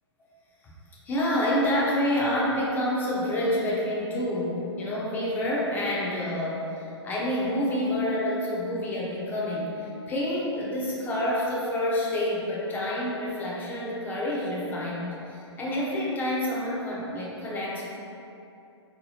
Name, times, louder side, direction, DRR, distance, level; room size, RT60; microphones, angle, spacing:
voice 1, 1.1-17.9, left 1 dB, 10° left, -5 dB, 0.5 m, -28 dB
3.8 x 2.8 x 2.7 m, 2.7 s
figure-of-eight pair, 115°, 15 cm